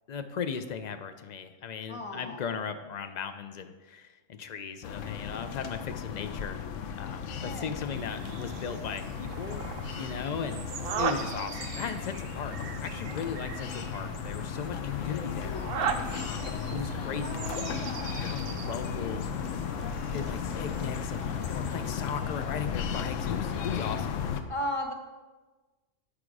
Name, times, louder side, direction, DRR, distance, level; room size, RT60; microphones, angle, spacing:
voice 1, 0.1-6.6 7.0-9.6 9.9-10.6 11.0-12.5 12.8-15.6 16.2-17.8 18.2-19.3 20.1-24.2, left 6 dB, 60° left, 8 dB, 0.4 m, -37 dB
voice 2, 1.9-2.4 7.4-7.7 17.2-18.2 24.5-24.9, left 1 dB, 30° left, 2 dB, 0.8 m, -36 dB
sound 1, 4.8-24.4, left 7 dB, 80° left, 0.9 m, -35 dB
sound 2, 7.9-22.0, right 6 dB, 60° right, 0.7 m, -39 dB
8.7 x 4.9 x 4.7 m, 1.2 s
omnidirectional pair, 1.3 m